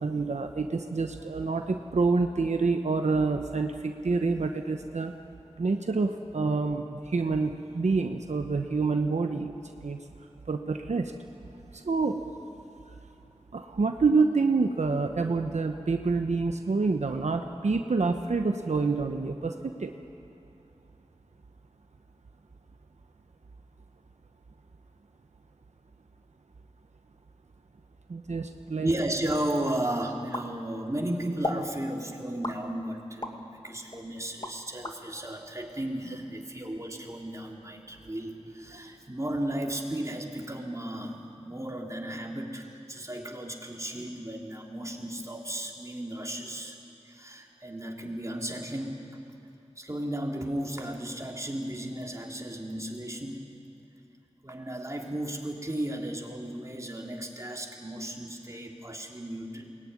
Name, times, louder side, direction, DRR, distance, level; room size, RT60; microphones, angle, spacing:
voice 1, 0.0-5.1 5.6-10.0 10.5-11.1 11.7-12.2 13.5-19.9 28.1-28.9, right 4 dB, 85° right, 5 dB, 1.0 m, -27 dB
voice 2, 28.8-46.8 47.0-49.1 49.8-53.5 54.4-59.7, right 1 dB, 25° right, 0 dB, 3.4 m, -34 dB
sound 1, 30.3-31.0 31.4-31.7 32.4-33.4 33.9-35.0, left 2 dB, 35° left, 1.9 m, -35 dB
22.5 x 19.5 x 9.8 m, 2.7 s
wide cardioid pair, 50°, 12 cm